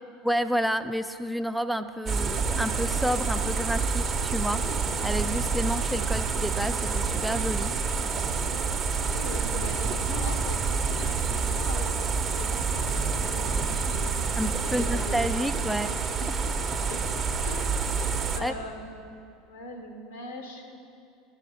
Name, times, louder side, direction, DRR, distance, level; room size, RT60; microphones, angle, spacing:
voice 1, 0.2-4.6 5.0-7.7 14.4-15.9 16.3-16.5 18.4-18.5, equal, ahead, 10 dB, 0.3 m, -30 dB
sound 1, 2.1-18.4, right 5 dB, 35° right, 0.8 m, -28 dB
voice 2, 9.1-15.5 16.7-17.0 17.4-17.8 18.3-20.8, left 2 dB, 85° left, 4 dB, 1.1 m, -41 dB
13.0 x 5.6 x 4.9 m, 2.5 s
hypercardioid pair, 85°, 0 cm